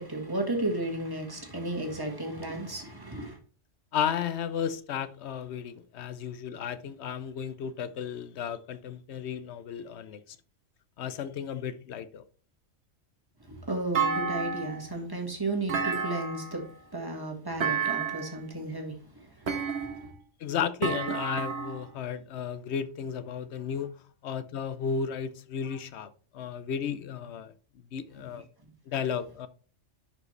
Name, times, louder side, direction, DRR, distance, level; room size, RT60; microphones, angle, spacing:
voice 1, 0.0-3.4 13.4-20.1, right 2 dB, 20° right, 1.7 m, -34 dB
voice 2, 3.9-10.4 11.0-12.2 20.4-27.5 27.9-28.4 28.9-29.5, left 7 dB, 65° left, 0.9 m, -34 dB
Thump thud, 13.9-14.9 15.7-16.6 17.6-18.4 19.5-20.2 20.8-21.8, right 6 dB, 65° right, 1.3 m, -30 dB
10.5 x 4.9 x 3.2 m
omnidirectional pair, 1.3 m